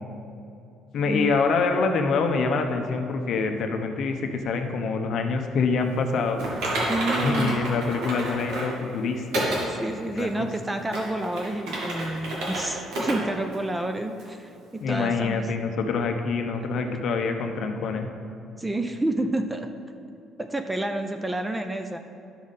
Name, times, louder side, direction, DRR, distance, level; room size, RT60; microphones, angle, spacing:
voice 1, 0.9-6.4 7.2-9.2 10.1-10.5 14.8-18.1, left 4 dB, 50° left, 5 dB, 0.7 m, -25 dB
Typing, 6.4-8.7 9.3-9.7 10.2-10.3 10.8-12.6 12.9-13.2 13.5-13.6 14.2-14.3, right 1 dB, 90° right, 2.3 m, -29 dB
voice 2, 6.8-7.6 9.5-15.5 18.6-19.7 20.4-22.0, right 1 dB, 10° right, 7 dB, 0.3 m, -29 dB
11.5 x 6.2 x 4.1 m, 2.6 s
cardioid pair, 170°, 0 cm